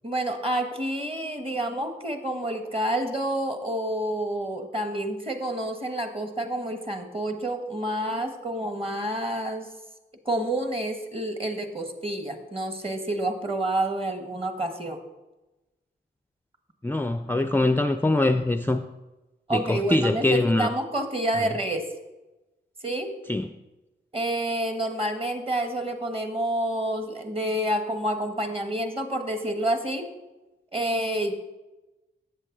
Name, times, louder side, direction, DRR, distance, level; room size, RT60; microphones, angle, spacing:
voice 1, 0.0-9.7 10.2-15.0 19.5-21.8 22.8-23.1 24.1-30.1 30.7-31.3, right 1 dB, 25° right, 6 dB, 1.4 m, -28 dB
voice 2, 16.8-18.9 19.5-20.7 23.3-23.5, left 2 dB, 10° left, 8 dB, 0.4 m, -23 dB
7.7 x 7.6 x 3.8 m, 1.1 s
supercardioid pair, 40°, 20 cm